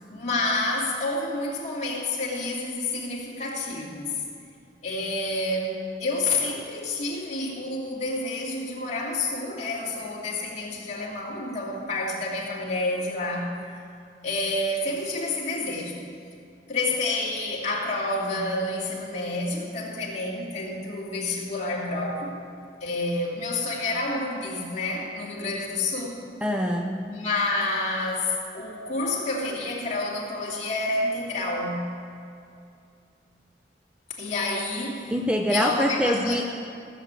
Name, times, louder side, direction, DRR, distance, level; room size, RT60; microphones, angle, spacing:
voice 1, 0.1-4.2 4.8-13.5 14.2-16.0 16.7-22.3 22.8-26.2 27.1-31.8 34.2-35.1 35.5-36.4, left 2 dB, 40° left, -4 dB, 2.8 m, -29 dB
voice 2, 26.4-27.1 35.1-36.4, equal, 5° right, 2 dB, 0.6 m, -24 dB
16.5 x 7.3 x 8.3 m, 2.5 s
head